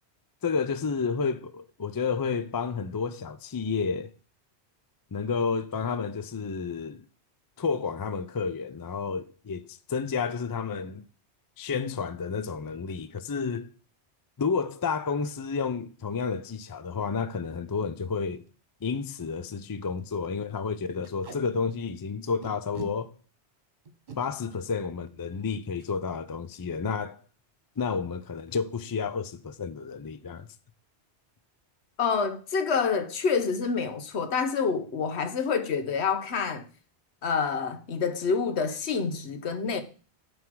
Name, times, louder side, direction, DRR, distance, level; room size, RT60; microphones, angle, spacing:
voice 1, 0.4-4.1 5.1-7.0 7.6-11.0 11.6-13.7 14.4-18.4 18.8-23.1 24.2-27.2 27.8-30.5, left 5 dB, 35° left, 0.3 m, -31 dB
Packing tape duct tape, 17.4-17.6 18.0-18.1 18.3-18.5 19.0-19.1 19.3-19.5 19.8-20.0 21.0-21.4 22.4-22.9 23.9-24.2 25.7-25.9 26.3-26.5 26.7-27.1, right 4 dB, 45° right, 1.5 m, -43 dB
voice 2, 32.0-36.7 37.2-39.8, left 5 dB, 75° left, 1.2 m, -27 dB
9.4 x 3.4 x 6.1 m
omnidirectional pair, 1.1 m